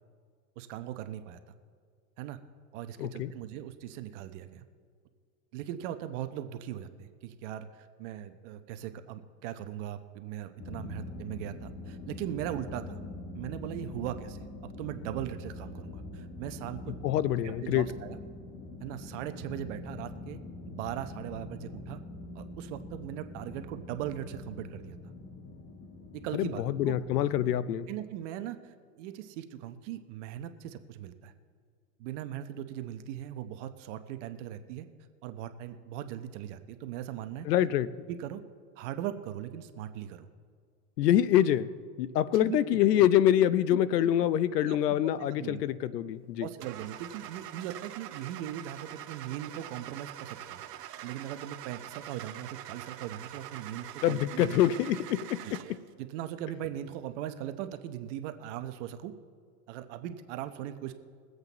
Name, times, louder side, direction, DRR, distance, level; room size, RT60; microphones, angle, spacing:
voice 1, 0.6-1.4 2.2-2.4 2.7-4.6 5.5-13.0 13.3-14.4 14.8-16.9 17.4-18.2 18.8-20.4 20.7-22.0 22.3-25.0 26.1-27.0 27.9-31.3 32.0-34.9 35.2-37.5 38.1-38.4 38.8-40.3 42.3-43.1 43.7-43.8 44.7-44.8 45.3-45.6 46.4-50.6 51.0-54.6 55.4-55.5 56.0-59.1 59.7-60.9, right 11 dB, 50° right, 0.9 m, -39 dB
voice 2, 3.0-3.3 17.0-17.9 26.3-27.9 37.4-37.9 41.0-46.5 54.0-55.8, left 11 dB, 80° left, 0.7 m, -26 dB
sound 1, 10.6-27.5, left 2 dB, 30° left, 1.1 m, -44 dB
Car / Engine starting, 46.6-55.9, right 12 dB, 85° right, 1.0 m, -44 dB
22.0 x 8.1 x 4.0 m
supercardioid pair, 135°, 47 cm